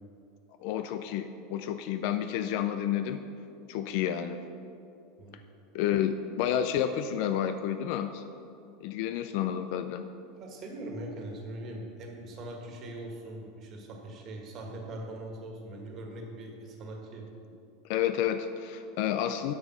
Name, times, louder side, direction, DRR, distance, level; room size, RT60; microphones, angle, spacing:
voice 1, 0.6-3.2 3.7-4.4 5.7-8.2 8.8-10.0 17.9-19.5, left 10 dB, 65° left, 9 dB, 0.4 m, -30 dB
voice 2, 10.4-17.3, right 1 dB, 45° right, 1 dB, 1.6 m, -41 dB
8.0 x 5.3 x 6.1 m, 2.6 s
supercardioid pair, 120°, 0 cm